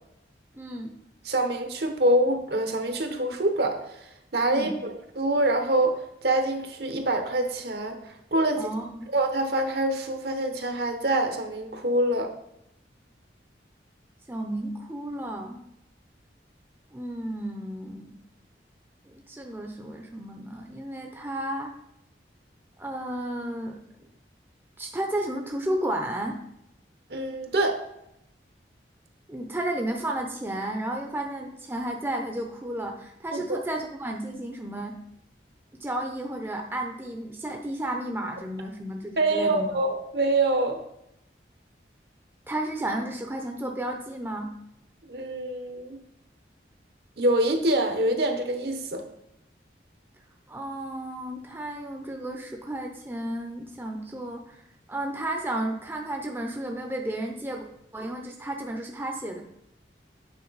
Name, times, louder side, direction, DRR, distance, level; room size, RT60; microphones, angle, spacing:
voice 1, 0.6-0.9 4.5-4.8 8.6-9.1 14.3-15.6 16.9-18.1 19.1-21.7 22.8-23.8 24.8-26.4 29.3-35.0 35.8-39.8 42.5-44.5 50.5-54.6 54.9-57.7 57.9-59.4, right 1 dB, 10° right, 2 dB, 0.6 m, -32 dB
voice 2, 1.3-4.0 4.3-8.0 8.3-8.7 9.1-12.3 27.1-27.8 33.3-33.6 39.2-40.8 45.1-46.0 47.2-49.0, right 1 dB, 60° right, 5 dB, 0.9 m, -25 dB
8.6 x 3.8 x 4.0 m, 0.79 s
head